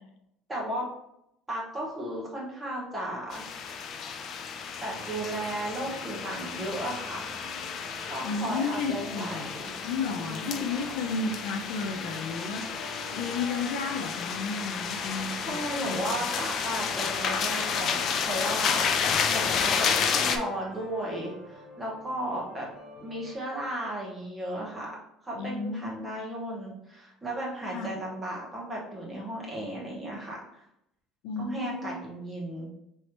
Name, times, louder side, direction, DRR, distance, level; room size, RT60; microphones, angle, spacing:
voice 1, 0.5-0.9 1.5-3.7 4.8-7.3 8.1-9.7 10.2-10.9 15.4-22.7 23.0-24.9 25.2-30.6 31.4-32.7, right 1 dB, 5° right, -4 dB, 1.0 m, -35 dB
sound 1, 3.3-20.4, left 6 dB, 35° left, 0.3 m, -31 dB
sound 2, 4.9-23.4, equal, 15° left, 1.2 m, -48 dB
voice 2, 8.2-9.5 9.8-16.2 25.3-25.9 27.7-27.9 31.2-32.0, left 4 dB, 70° left, 4 dB, 0.6 m, -33 dB
4.6 x 3.2 x 3.0 m, 0.78 s
cardioid pair, 180°, 0 cm